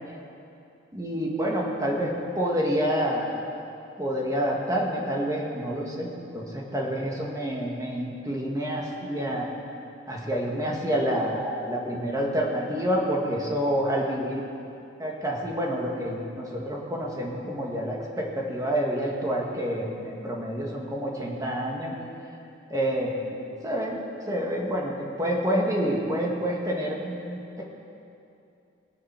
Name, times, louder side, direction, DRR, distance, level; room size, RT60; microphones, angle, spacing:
voice 1, 0.9-3.3 4.0-9.5 10.1-14.4 15.0-21.9 22.7-24.0 24.3-27.6, equal, 20° right, -2 dB, 1.9 m, -28 dB
21.5 x 7.4 x 6.1 m, 2.7 s
head